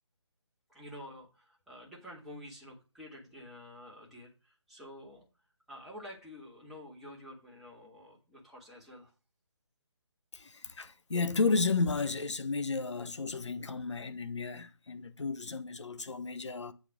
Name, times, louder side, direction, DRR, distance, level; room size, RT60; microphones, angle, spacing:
voice 1, 0.7-5.2 5.7-9.1, left 1 dB, ahead, 1.6 m, -49 dB
voice 2, 10.3-16.7, left 4 dB, 70° left, 0.9 m, -33 dB
8.1 x 4.2 x 6.2 m
figure-of-eight pair, 155°, 16 cm